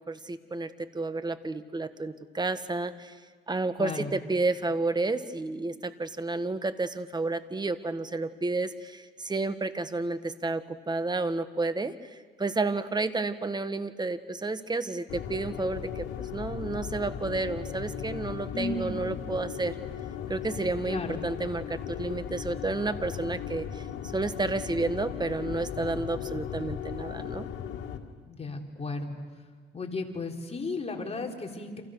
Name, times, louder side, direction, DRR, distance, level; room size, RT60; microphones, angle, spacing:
voice 1, 0.0-3.1 3.5-11.9 12.4-19.7 20.3-23.8 24.1-27.5, right 3 dB, 20° right, 11 dB, 1.6 m, -31 dB
voice 2, 3.8-4.1 18.5-19.0 20.8-21.2 28.3-29.2 29.7-31.8, left 3 dB, 30° left, 2 dB, 3.9 m, -34 dB
sound 1, 15.1-28.0, left 8 dB, 80° left, 2.2 m, -37 dB
29.5 x 27.5 x 6.6 m, 1.5 s
cardioid pair, 90°, 20 cm